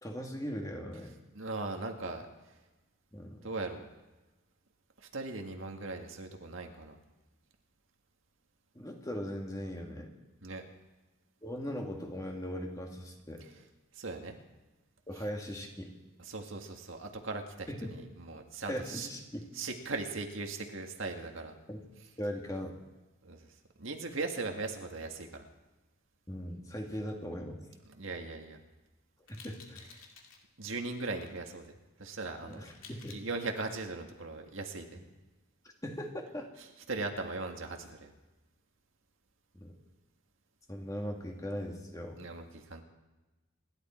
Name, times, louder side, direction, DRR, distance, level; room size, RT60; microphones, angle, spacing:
voice 1, 0.0-1.2 3.1-3.5 8.7-10.1 11.4-13.4 15.1-15.9 17.7-17.9 18.7-19.4 21.7-21.8 22.2-22.7 26.3-27.6 29.3-29.8 32.5-33.2 35.8-36.5 39.5-39.7 40.7-42.2, equal, 15° left, 1 dB, 2.1 m, -39 dB
voice 2, 1.3-2.6 3.4-3.9 5.0-7.0 10.4-10.7 13.4-13.5 13.9-14.4 16.2-19.1 19.5-21.6 23.2-23.5 23.8-25.5 26.9-27.0 27.9-28.6 30.6-35.0 36.6-38.1 42.2-42.8, right 3 dB, 70° right, 3 dB, 1.9 m, -39 dB
sound 1, 29.3-30.4 31.1-31.4 32.5-33.2, left 5 dB, 75° left, 2.5 m, -53 dB
27.0 x 11.5 x 4.4 m, 1.1 s
head